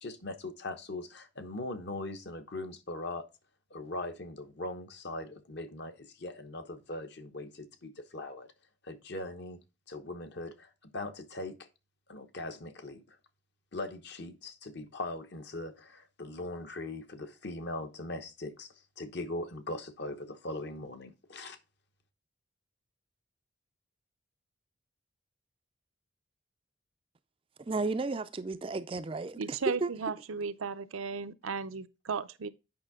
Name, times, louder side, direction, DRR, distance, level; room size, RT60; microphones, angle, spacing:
voice 1, 0.0-3.2 3.7-8.5 8.8-9.6 9.9-11.7 12.1-13.2 13.7-21.6, left 2 dB, 55° left, 1.0 m, -40 dB
voice 2, 27.7-29.9, right 3 dB, 25° right, 0.4 m, -33 dB
voice 3, 29.4-32.5, right 5 dB, 80° right, 0.6 m, -35 dB
8.7 x 5.5 x 3.6 m
head